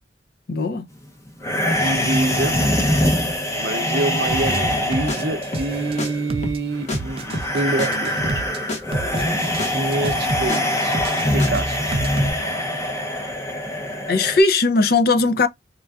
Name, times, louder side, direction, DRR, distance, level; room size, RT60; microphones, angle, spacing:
voice 1, 0.5-0.9 14.1-15.5, left 3 dB, 55° left, 0.5 m, -18 dB
sound 1, 1.4-14.4, left 1 dB, 15° left, 0.6 m, -23 dB
voice 2, 1.8-2.7 3.6-8.2 9.7-11.0 11.3-12.0, right 2 dB, 70° right, 0.6 m, -26 dB
sound 2, 4.3-4.6 4.9-5.7 5.9-6.6 6.9-7.6 7.9-8.6 8.9-9.7 9.9-10.6 10.9-12.3, right 2 dB, 30° right, 0.4 m, -29 dB
sound 3, 4.6-4.8 5.1-5.2 5.5-5.7 6.0-6.1 6.4-6.6 6.9-7.0 7.3-7.5 7.8-7.9 8.2-8.4 8.7-8.8 9.1-9.3 9.6-9.7 10.0-10.6 10.9-11.1 11.4-11.5, left 1 dB, 40° left, 1.0 m, -28 dB
4.4 x 2.4 x 2.3 m
head